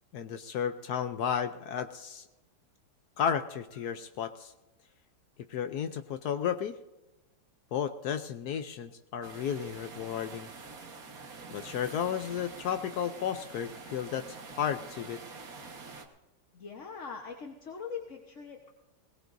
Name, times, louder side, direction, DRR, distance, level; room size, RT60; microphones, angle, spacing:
voice 1, 0.1-2.2 3.2-4.5 5.5-6.8 7.7-10.5 11.5-15.2, left 8 dB, 75° left, 9 dB, 0.9 m, -33 dB
sound 1, 9.2-16.1, right 4 dB, 45° right, 1.7 m, -46 dB
voice 2, 16.5-18.7, left 6 dB, 45° left, 2 dB, 1.2 m, -42 dB
20.5 x 18.5 x 2.6 m, 1.0 s
omnidirectional pair, 2.3 m